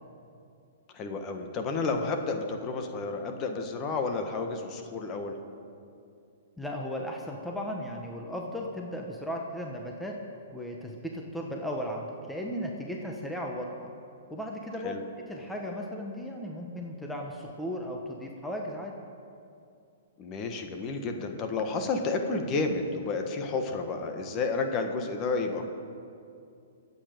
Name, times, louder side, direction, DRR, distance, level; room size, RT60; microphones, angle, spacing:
voice 1, 0.9-5.4 14.8-15.0 20.2-25.6, left 3 dB, 30° left, 5 dB, 1.4 m, -31 dB
voice 2, 6.6-10.1 10.5-13.9 14.3-18.9, equal, 5° left, 0 dB, 1.1 m, -36 dB
24.0 x 8.5 x 5.2 m, 2.5 s
hypercardioid pair, 140°, 0 cm